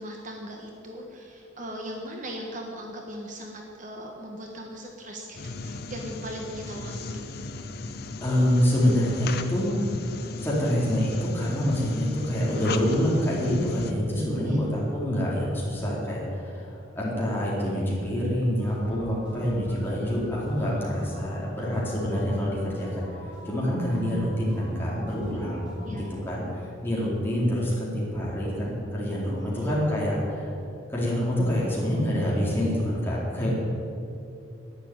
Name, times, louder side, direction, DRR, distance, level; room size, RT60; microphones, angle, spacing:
voice 1, 0.0-7.3 14.4-14.7 25.8-26.1 29.2-29.7, equal, 40° right, 1 dB, 1.4 m, -39 dB
sound 1, 5.4-13.9, left 3 dB, 50° left, 0.8 m, -36 dB
voice 2, 8.2-9.7 10.4-30.5 30.9-33.6, equal, 10° left, -6 dB, 4.0 m, -26 dB
sound 2, 18.6-26.1, left 1 dB, 5° right, 3.9 m, -45 dB
11.5 x 9.7 x 9.5 m, 2.6 s
head